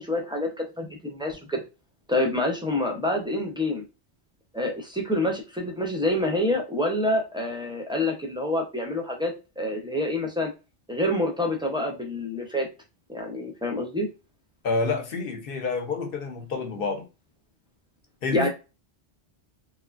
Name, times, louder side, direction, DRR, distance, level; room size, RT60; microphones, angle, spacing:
voice 1, 0.0-1.6 2.1-3.8 4.5-10.5 10.9-12.7 13.1-14.1 18.3-18.5, left 1 dB, 5° right, 0.3 m, -27 dB
voice 2, 14.6-17.1 18.2-18.5, left 4 dB, 65° left, 0.8 m, -28 dB
3.1 x 2.1 x 2.3 m
omnidirectional pair, 1.1 m